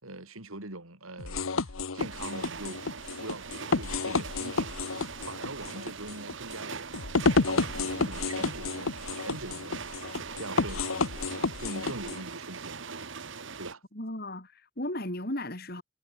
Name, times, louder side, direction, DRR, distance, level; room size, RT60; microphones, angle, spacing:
voice 1, 0.0-2.8 3.2-3.5 3.7-7.0 7.4-9.9 10.3-10.9 11.6-13.1 13.6-13.8, right 2 dB, 85° right, 4.6 m, -42 dB
sound 1, 1.2-12.2, left 3 dB, 80° left, 1.1 m, -31 dB
sound 2, 2.0-13.7, right 5 dB, 60° right, 1.3 m, -41 dB
voice 2, 13.9-15.8, left 1 dB, 45° left, 4.1 m, -35 dB
head